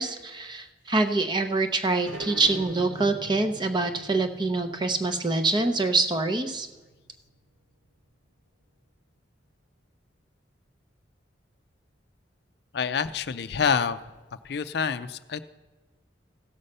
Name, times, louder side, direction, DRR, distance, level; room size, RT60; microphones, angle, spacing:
voice 1, 0.0-6.7, right 3 dB, 25° right, 7 dB, 0.6 m, -25 dB
sound 1, 2.0-7.3, right 1 dB, 70° right, 1.9 m, -43 dB
voice 2, 12.7-14.0 14.4-15.4, left 6 dB, 60° left, 12 dB, 0.4 m, -27 dB
15.5 x 5.5 x 6.6 m, 1.2 s
head